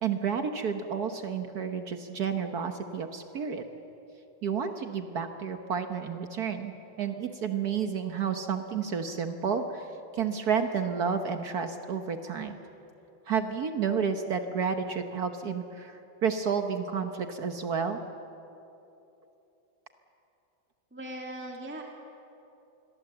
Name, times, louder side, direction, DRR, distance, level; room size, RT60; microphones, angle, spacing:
voice 1, 0.0-3.6 4.4-9.9 10.1-12.6 13.3-18.0, right 6 dB, 60° right, 7 dB, 1.5 m, -31 dB
voice 2, 20.9-21.8, right 1 dB, 5° right, 0 dB, 2.1 m, -39 dB
26.5 x 22.0 x 7.9 m, 2.9 s
omnidirectional pair, 2.0 m